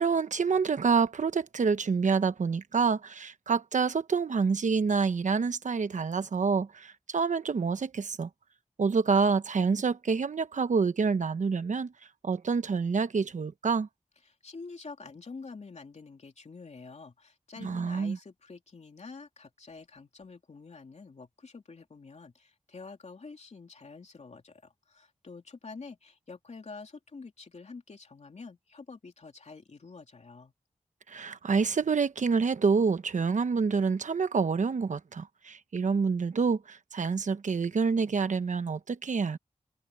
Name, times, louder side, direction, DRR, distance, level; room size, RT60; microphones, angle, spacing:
voice 1, 0.0-8.3 8.8-11.9 12.2-13.9 17.6-18.2 31.1-39.4, right 5 dB, 85° right, 1.0 m, -27 dB
voice 2, 14.2-30.5, left 4 dB, 65° left, 3.0 m, -47 dB
wide cardioid pair, 80°, 12 cm